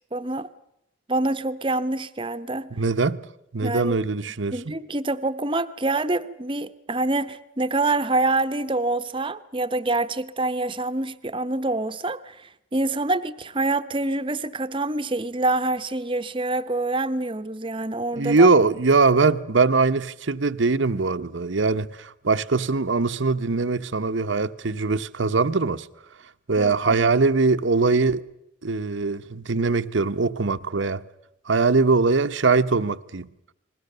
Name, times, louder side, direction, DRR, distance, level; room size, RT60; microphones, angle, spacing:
voice 1, 0.1-0.5 1.1-2.7 3.6-4.0 4.5-18.5 26.6-27.1, right 2 dB, 25° right, 0.9 m, -26 dB
voice 2, 2.7-3.2 3.5-4.7 18.1-25.9 26.5-28.2 28.6-31.0 31.5-33.3, right 4 dB, 65° right, 0.9 m, -21 dB
30.0 x 21.0 x 6.7 m
head